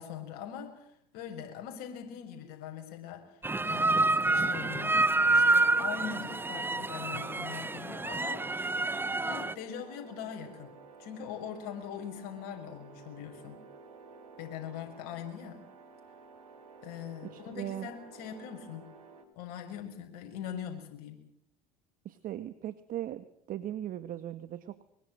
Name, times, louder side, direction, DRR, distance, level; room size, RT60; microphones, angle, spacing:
voice 1, 0.0-3.4 3.6-5.0 5.3-8.7 9.1-10.7 11.0-13.6 14.4-15.7 16.8-18.9 19.4-21.2, left 9 dB, 65° left, 4 dB, 6.3 m, -42 dB
sound 1, 3.4-9.5, right 2 dB, 10° right, 1.0 m, -28 dB
sound 2, 3.6-19.2, right 4 dB, 85° right, 5.0 m, -53 dB
voice 2, 17.3-17.9 22.1-24.8, right 12 dB, 50° right, 12 dB, 1.7 m, -39 dB
24.0 x 23.0 x 7.9 m, 0.68 s
hypercardioid pair, 75°, 18 cm